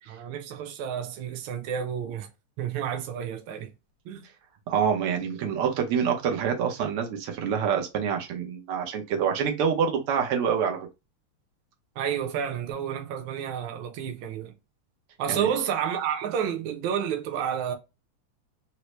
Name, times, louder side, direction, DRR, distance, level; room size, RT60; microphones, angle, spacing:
voice 1, 0.1-2.3 2.6-3.7 4.0-4.2 12.0-14.5 15.2-17.7, right 8 dB, 75° right, 1.4 m, -30 dB
voice 2, 4.7-10.9 15.3-15.5, right 7 dB, 90° right, 1.8 m, -26 dB
4.4 x 2.0 x 3.1 m
omnidirectional pair, 2.4 m